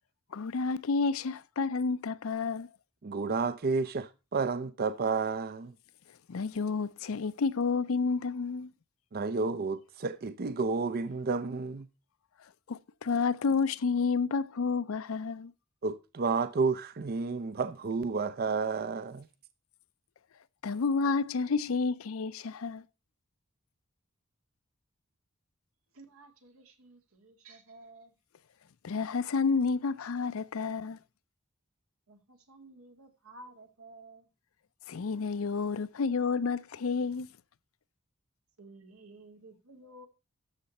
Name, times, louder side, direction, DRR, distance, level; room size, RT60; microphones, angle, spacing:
voice 1, 0.3-2.7 6.3-8.7 12.7-15.5 20.6-22.8 28.8-31.0 34.9-37.3, left 4 dB, 70° left, 0.5 m, -30 dB
voice 2, 3.0-5.8 9.1-11.9 15.8-19.3, right 4 dB, 45° right, 0.5 m, -31 dB
voice 3, 25.9-28.1 32.1-34.3 38.6-40.1, right 2 dB, 85° right, 2.1 m, -53 dB
13.0 x 6.7 x 4.2 m
head